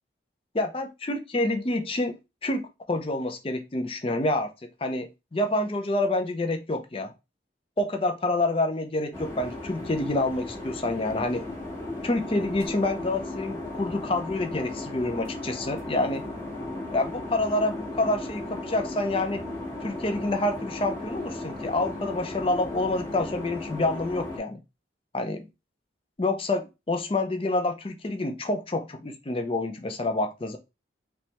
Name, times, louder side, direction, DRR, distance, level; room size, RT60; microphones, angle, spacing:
voice 1, 0.5-7.1 7.8-11.5 12.0-16.2 16.9-19.4 19.8-24.6 25.1-25.5 26.2-30.6, left 2 dB, 30° left, 0.5 m, -28 dB
sound 1, 9.1-24.4, left 2 dB, 15° left, 1.0 m, -36 dB
3.3 x 3.1 x 2.9 m
head